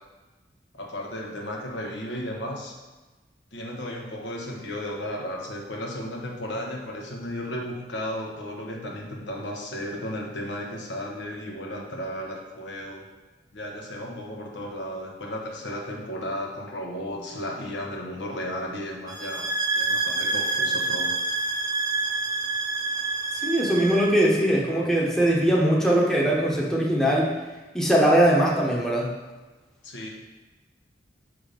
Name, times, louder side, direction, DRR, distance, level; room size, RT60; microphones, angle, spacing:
voice 1, 0.7-2.8 3.5-13.1 13.5-19.5 19.8-21.1 29.8-30.1, equal, 85° left, 0 dB, 1.1 m, -34 dB
sound 1, 19.1-24.1, right 3 dB, 20° right, 0.6 m, -27 dB
voice 2, 23.4-27.3 27.7-29.1, right 1 dB, 5° left, -3 dB, 0.9 m, -21 dB
6.7 x 3.6 x 5.0 m, 1.2 s
head